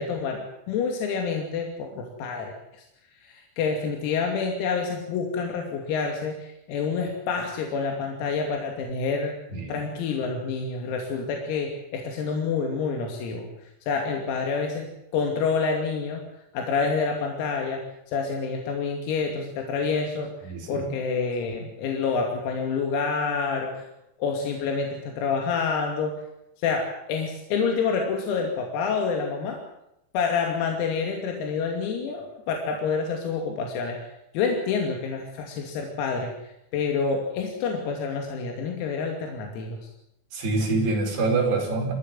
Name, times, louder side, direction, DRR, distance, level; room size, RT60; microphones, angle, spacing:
voice 1, 0.0-2.8 3.2-9.4 9.7-13.5 13.8-23.9 24.2-26.2 26.6-29.6 30.1-34.1 34.3-39.8, left 5 dB, 90° left, 2 dB, 5.4 m, -28 dB
voice 2, 20.4-20.9 40.3-41.9, right 3 dB, 55° right, 0 dB, 7.0 m, -25 dB
26.5 x 16.0 x 7.8 m, 0.81 s
omnidirectional pair, 6.0 m